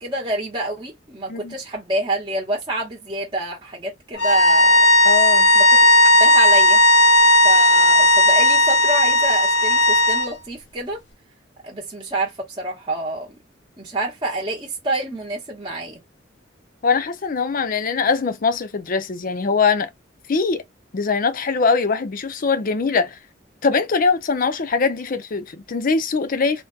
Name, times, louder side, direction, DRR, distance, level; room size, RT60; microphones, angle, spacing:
voice 1, 0.0-4.9 5.5-6.8 7.4-11.0 11.6-13.4 13.8-16.0, right 1 dB, 25° right, 0.8 m, -28 dB
sound 1, 4.2-10.3, left 1 dB, 85° left, 0.8 m, -14 dB
voice 2, 5.0-5.5 16.8-19.9 20.3-20.6 20.9-23.2 23.6-26.6, left 4 dB, 50° left, 0.5 m, -22 dB
3.4 x 2.1 x 2.3 m
head